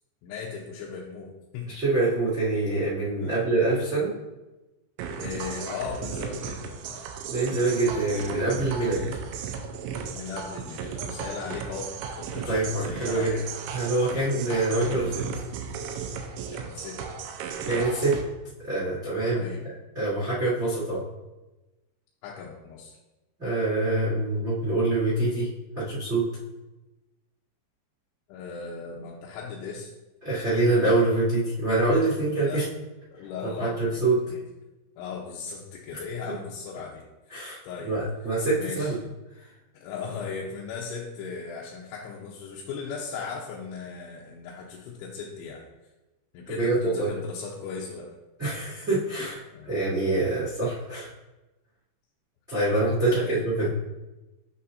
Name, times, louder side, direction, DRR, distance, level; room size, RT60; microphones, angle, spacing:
voice 1, 0.2-1.7 3.2-3.5 5.1-7.1 10.1-11.9 12.2-13.4 16.5-17.0 19.3-19.7 22.2-23.0 28.3-29.9 32.4-32.6 33.1-34.4 35.0-37.9 38.5-38.9 39.7-45.6 46.3-48.1 49.5-49.7 53.0-53.4, left 5 dB, 85° left, -3 dB, 3.1 m, -37 dB
voice 2, 1.7-4.1 7.3-9.0 12.5-13.3 13.7-15.2 17.7-18.2 18.6-19.4 19.9-21.0 23.4-25.5 25.7-26.3 30.2-32.6 33.4-34.2 36.3-36.4 37.3-37.6 37.8-39.0 46.5-47.1 48.4-51.1 52.5-53.7, right 2 dB, 25° right, -9 dB, 1.7 m, -25 dB
sound 1, 5.0-18.2, right 6 dB, 90° right, 3.0 m, -35 dB
8.3 x 6.9 x 2.6 m, 1.1 s
omnidirectional pair, 5.4 m